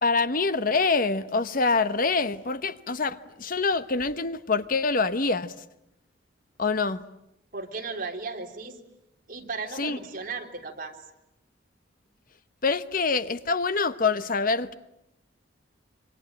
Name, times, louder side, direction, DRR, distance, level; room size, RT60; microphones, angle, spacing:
voice 1, 0.0-5.5 6.6-7.0 9.8-10.0 12.6-14.7, left 4 dB, 50° left, 1.0 m, -25 dB
voice 2, 7.5-8.8 9.3-11.0, right 4 dB, 50° right, 3.6 m, -35 dB
26.5 x 24.5 x 8.8 m
head